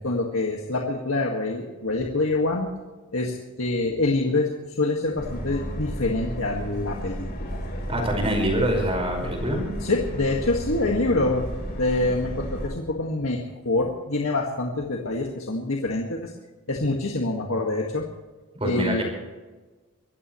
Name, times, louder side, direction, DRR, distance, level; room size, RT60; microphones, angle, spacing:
voice 1, 0.0-2.7 3.1-7.6 9.8-16.3 16.7-18.1 18.6-19.0, left 2 dB, 70° left, 0 dB, 1.9 m, -26 dB
Subway metro underground, 5.2-12.7, equal, 45° left, 4.1 m, -33 dB
voice 2, 7.8-9.8 18.6-19.0, equal, 25° right, 2 dB, 5.2 m, -25 dB
24.5 x 15.5 x 3.2 m, 1.2 s
head